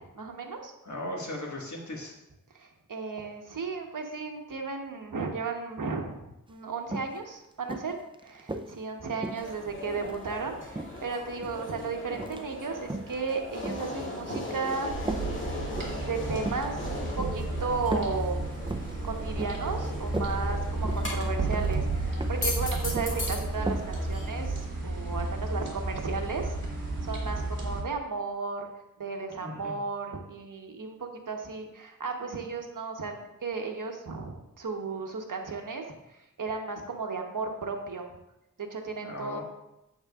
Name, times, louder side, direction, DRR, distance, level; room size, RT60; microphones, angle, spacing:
voice 1, 0.1-0.7 2.5-15.1 15.6-18.5 19.0-24.6 24.8-26.6 27.0-28.7 29.0-33.1 33.4-35.9 36.4-38.2 38.6-39.4, right 4 dB, 70° right, 3 dB, 1.2 m, -34 dB
voice 2, 0.8-2.1 29.4-29.8 39.0-39.4, left 1 dB, 55° left, -1 dB, 1.8 m, -37 dB
sound 1, 6.5-6.6 6.9-7.2 7.7-8.7 9.2-10.3 10.7-11.7 12.1-12.5 12.8-13.2 13.6-14.6 15.1-15.3 15.7-16.0 16.4-16.7 17.2-17.4 17.9-18.2 18.5-19.0 19.4-19.7 20.0-20.3 20.8-21.2 21.5-21.8 22.2-22.5 22.7-23.2 23.7-23.9 24.2-24.3, right 2 dB, 15° right, 0.5 m, -36 dB
sound 2, 9.4-24.7, left 2 dB, 35° left, 2.0 m, -39 dB
sound 3, 14.9-27.8, right 2 dB, 35° right, 2.6 m, -32 dB
8.7 x 7.7 x 2.5 m, 0.91 s
wide cardioid pair, 75°, 34 cm